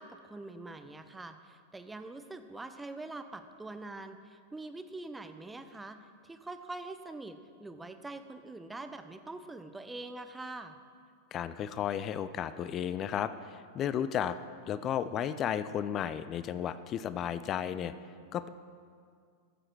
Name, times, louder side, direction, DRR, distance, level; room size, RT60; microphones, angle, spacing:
voice 1, 0.0-6.0 6.2-10.8, right 2 dB, 10° right, 9 dB, 0.6 m, -44 dB
voice 2, 11.3-14.4 14.7-17.9 18.3-18.5, left 9 dB, 30° left, 13 dB, 0.4 m, -33 dB
14.0 x 7.7 x 4.7 m, 2.2 s
figure-of-eight pair, 90°, 0 cm